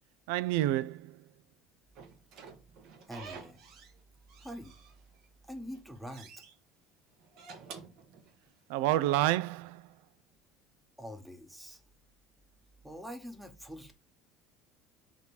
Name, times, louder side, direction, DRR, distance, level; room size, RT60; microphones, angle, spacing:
voice 1, 0.3-1.2 8.7-9.8, right 14 dB, 85° right, 0.3 m, -29 dB
Slam / Squeak, 2.0-4.0 4.3-5.3 5.6-6.5 7.2-8.7, right 5 dB, 60° right, 1.5 m, -50 dB
voice 2, 3.1-3.6 4.4-4.7 5.5-6.3 11.0-11.8 12.8-13.9, equal, 5° right, 1.0 m, -44 dB
6.2 x 3.0 x 5.3 m
cardioid pair, 140°, 0 cm